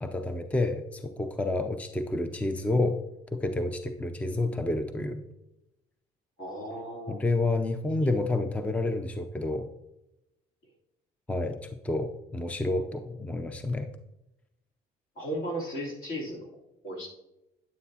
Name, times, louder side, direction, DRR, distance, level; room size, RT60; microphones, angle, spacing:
voice 1, 0.0-3.0 3.3-5.2 7.1-9.7 11.3-13.9, left 2 dB, 10° left, 7 dB, 0.5 m, -29 dB
voice 2, 6.4-7.2 8.0-8.1 15.1-17.1, equal, 60° left, -3 dB, 3.2 m, -36 dB
9.5 x 9.2 x 2.8 m, 0.91 s
cardioid pair, 110°, 17 cm